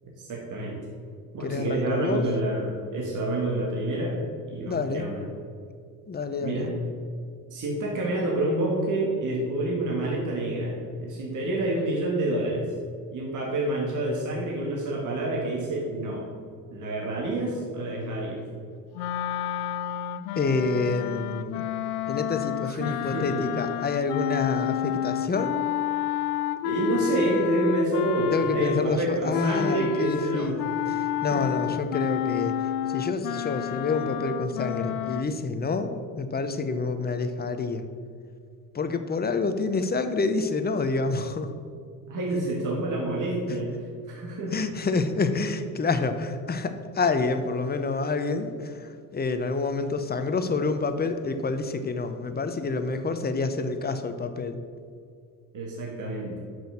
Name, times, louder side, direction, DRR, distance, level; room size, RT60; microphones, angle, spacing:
voice 1, 0.0-0.9 1.3-4.2 4.5-5.3 6.4-6.7 7.5-10.7 11.0-12.6 13.1-16.2 16.7-18.4 22.6-23.3 26.6-30.6 31.3-31.5 42.1-43.7 44.1-44.5 55.5-56.4, right 2 dB, 45° right, -3 dB, 2.1 m, -28 dB
voice 2, 1.4-2.3 4.7-5.1 6.1-6.7 20.3-21.7 22.1-25.6 28.3-32.5 32.9-37.8 38.7-41.5 44.5-54.6, left 3 dB, 20° left, 9 dB, 0.8 m, -28 dB
sound 1, 18.9-29.0 29.3-35.2, left 11 dB, 85° left, 0.6 m, -30 dB
6.3 x 6.3 x 7.1 m, 2.2 s
hypercardioid pair, 80°, 44 cm